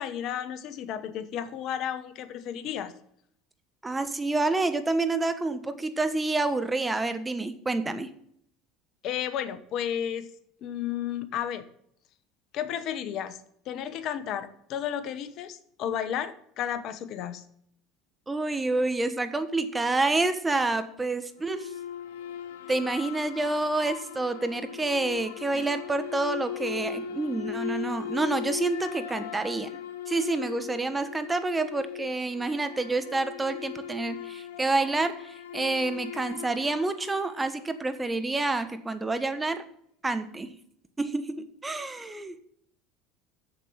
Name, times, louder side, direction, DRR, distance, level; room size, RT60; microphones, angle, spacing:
voice 1, 0.0-2.9 9.0-10.3 10.6-11.7 12.5-13.4 13.7-17.4 25.5-25.6, left 9 dB, 55° left, 12 dB, 1.0 m, -33 dB
voice 2, 3.8-8.1 18.3-21.7 22.7-29.8 30.1-39.7 40.0-40.5 41.0-42.3, right 2 dB, 15° right, 10 dB, 1.2 m, -28 dB
sound 1, 21.4-38.0, left 9 dB, 80° left, 0.8 m, -39 dB
7.6 x 7.2 x 7.0 m, 0.67 s
hypercardioid pair, 75°, 0 cm